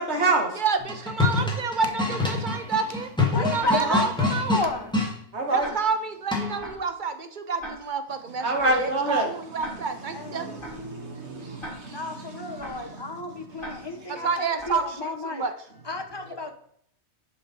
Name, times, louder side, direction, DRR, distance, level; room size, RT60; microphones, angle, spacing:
voice 1, 0.0-0.5 3.8-4.0 5.3-5.7 8.4-9.3 10.1-12.1 12.5-13.9, right 2 dB, 70° right, 2 dB, 2.0 m, -28 dB
voice 2, 0.5-3.1 3.4-4.6 5.5-10.5 14.1-15.5, right 5 dB, 50° right, 9 dB, 0.9 m, -29 dB
sound 1, 0.8-5.1 6.3-6.7, left 3 dB, 5° left, 1.9 m, -26 dB
voice 3, 3.3-4.9 10.1-10.6 11.9-15.4 15.8-16.5, left 2 dB, 25° left, 5 dB, 1.0 m, -32 dB
Tick-tock, 3.6-3.7 4.6-4.7 5.6-5.7 6.6-6.7 7.6-7.7 8.6-8.7 9.6-9.7 10.6-10.7 11.6-11.7 12.6-12.7 13.6-13.7 14.6-14.7, right 1 dB, 50° left, 3.5 m, -37 dB
10.0 x 5.3 x 4.3 m, 0.68 s
omnidirectional pair, 1.2 m